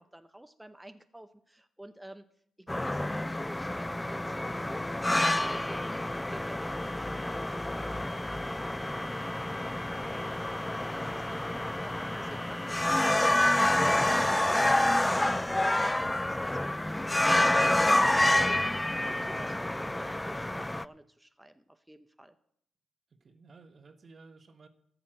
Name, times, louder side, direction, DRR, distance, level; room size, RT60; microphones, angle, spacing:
voice 1, 0.0-2.3 2.6-8.9 10.9-22.3, right 1 dB, 10° right, 9 dB, 0.7 m, -49 dB
sound 1, 2.7-20.9, left 1 dB, 15° left, 0.4 m, -28 dB
voice 2, 11.1-11.6 23.2-24.7, right 4 dB, 50° right, 8 dB, 1.3 m, -55 dB
13.0 x 5.8 x 7.6 m, 0.70 s
hypercardioid pair, 45°, 0 cm